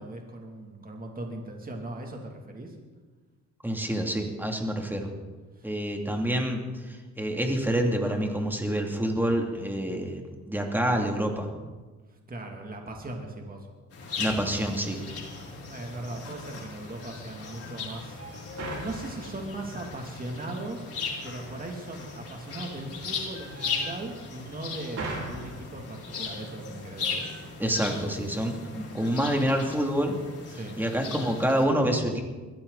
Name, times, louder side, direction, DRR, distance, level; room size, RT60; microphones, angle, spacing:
voice 1, 0.0-2.8 5.5-5.7 12.1-13.7 15.7-27.3 30.5-30.8, right 2 dB, 30° right, 1 dB, 2.9 m, -39 dB
voice 2, 3.6-5.1 5.6-11.5 14.2-15.0 27.6-30.2 30.8-32.2, equal, 5° right, 2 dB, 3.0 m, -27 dB
sound 1, 13.9-31.7, left 4 dB, 50° left, 5.6 m, -38 dB
sound 2, 14.9-28.0, right 2 dB, 55° right, 4.6 m, -45 dB
21.5 x 15.5 x 4.2 m, 1.3 s
cardioid pair, 90°, 30 cm